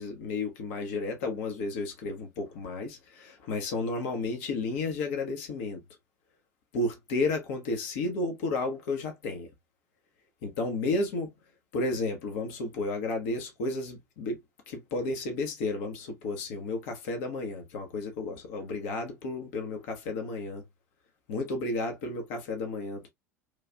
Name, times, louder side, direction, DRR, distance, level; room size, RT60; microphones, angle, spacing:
voice 1, 0.0-5.8 6.7-9.5 10.4-11.3 11.7-14.4 14.7-20.6 21.3-23.1, left 2 dB, 55° left, 0.8 m, -32 dB
3.2 x 2.4 x 2.3 m
figure-of-eight pair, 75°, 9 cm